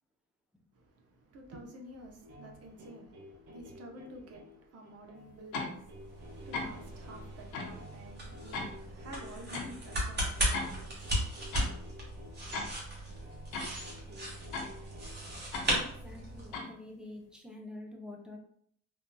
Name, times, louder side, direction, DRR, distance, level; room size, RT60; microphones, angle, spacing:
voice 1, 0.7-13.8, right 1 dB, 50° right, 0.8 m, -51 dB
sound 1, 2.2-15.3, left 2 dB, 85° right, 0.9 m, -53 dB
sound 2, 5.5-5.8 6.5-6.8 7.5-7.7 8.5-8.7 9.5-9.7 10.5-10.7 11.5-11.7 12.5-12.7 13.5-13.7 14.5-14.7 15.5-15.7 16.5-16.7, left 3 dB, 80° left, 0.7 m, -36 dB
sound 3, 5.8-16.6, right 1 dB, 35° right, 1.4 m, -37 dB
voice 2, 15.8-18.4, left 2 dB, 5° right, 0.6 m, -47 dB
3.7 x 2.5 x 2.2 m
cardioid pair, 95°, 31 cm